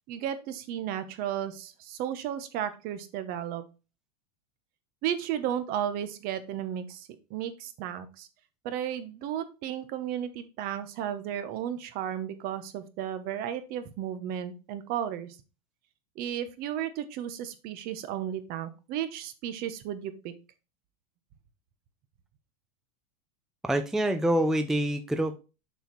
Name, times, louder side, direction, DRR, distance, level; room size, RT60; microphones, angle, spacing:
voice 1, 0.1-3.6 5.0-8.3 8.6-15.3 16.2-20.3, right 10 dB, 45° right, 11 dB, 1.0 m, -34 dB
voice 2, 23.6-25.4, right 1 dB, ahead, 8 dB, 0.4 m, -26 dB
6.9 x 4.5 x 4.1 m, 0.31 s
hypercardioid pair, 115°, 20 cm